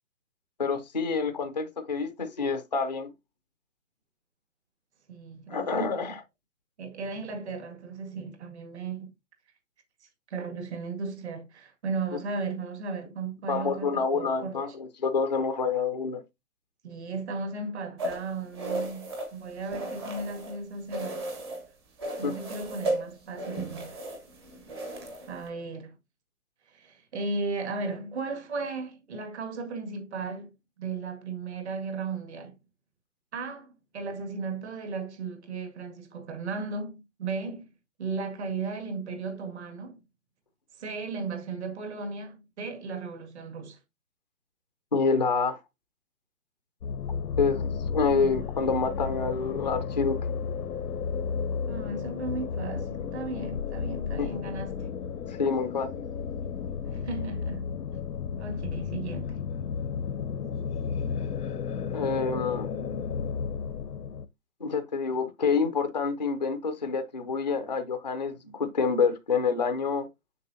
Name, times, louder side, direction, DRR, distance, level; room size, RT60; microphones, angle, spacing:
voice 1, 0.6-3.1 5.5-6.2 13.5-16.2 22.2-22.3 44.9-45.6 47.4-50.2 54.2-54.3 55.3-56.0 61.9-62.7 64.6-70.1, left 5 dB, 30° left, 0.4 m, -27 dB
voice 2, 5.1-6.1 6.8-9.1 10.0-14.6 16.8-21.3 22.2-24.0 25.3-26.0 26.7-32.6 33.3-37.7 38.0-40.0 40.8-43.8 48.2-48.4 51.7-54.9 56.9-57.7 58.4-59.4, right 4 dB, 45° right, 2.0 m, -36 dB
sound 1, 18.0-20.6 20.9-21.7 22.0-25.5, right 1 dB, 15° right, 0.9 m, -35 dB
sound 2, 46.8-64.2, left 6 dB, 90° left, 0.8 m, -33 dB
6.7 x 6.4 x 2.6 m
hypercardioid pair, 160°, 46 cm